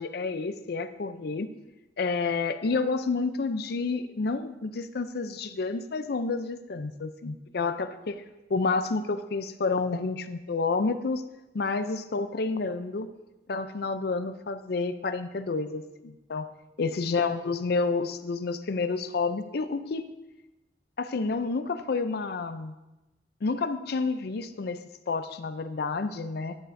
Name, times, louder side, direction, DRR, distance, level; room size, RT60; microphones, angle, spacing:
voice 1, 0.0-1.5 2.0-8.2 8.5-11.2 11.5-13.1 13.5-16.5 16.8-20.1 21.0-22.7 23.4-26.6, left 4 dB, 60° left, 11 dB, 0.5 m, -29 dB
11.0 x 8.9 x 2.7 m, 1.0 s
head